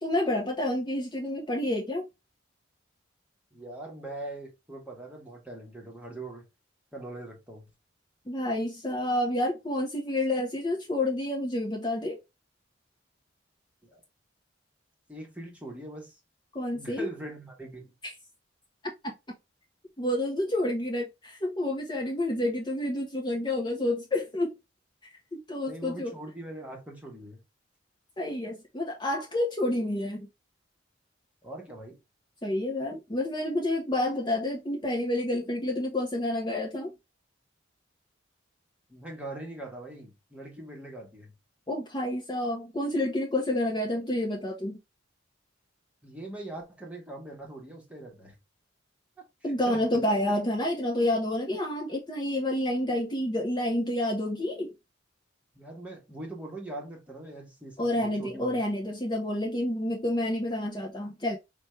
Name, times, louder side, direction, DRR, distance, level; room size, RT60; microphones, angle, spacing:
voice 1, 0.0-2.0 8.3-12.2 16.5-17.1 18.0-18.1 19.0-19.1 20.0-24.5 25.3-26.1 28.2-30.3 32.4-36.9 41.7-44.8 49.4-54.7 57.8-61.4, left 1 dB, 25° left, 0.7 m, -29 dB
voice 2, 3.5-6.5 6.9-7.7 13.8-14.0 15.1-16.2 16.7-17.9 25.7-27.4 31.4-32.0 38.9-41.3 46.0-48.4 49.4-50.0 55.5-58.6, right 2 dB, 5° right, 1.1 m, -42 dB
5.0 x 2.2 x 3.1 m
head